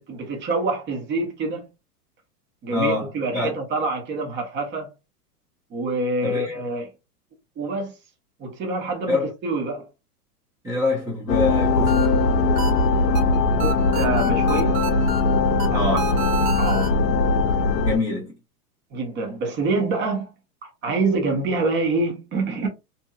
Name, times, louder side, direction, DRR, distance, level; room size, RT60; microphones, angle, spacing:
voice 1, 0.0-1.7 2.6-4.9 5.7-6.9 7.6-7.9 8.4-9.9 13.6-14.8 15.7-15.9 16.6-17.0 18.9-20.3 20.6-22.7, right 3 dB, 25° right, 1.0 m, -26 dB
voice 2, 2.7-3.6 6.2-6.5 9.1-9.3 10.6-12.2 15.7-16.1 17.8-18.3, left 2 dB, 10° right, 0.5 m, -25 dB
sound 1, 11.3-18.0, left 3 dB, 85° left, 0.6 m, -20 dB
sound 2, 11.5-16.9, right 5 dB, 75° right, 0.9 m, -32 dB
2.9 x 2.6 x 2.3 m
hypercardioid pair, 130°, 47 cm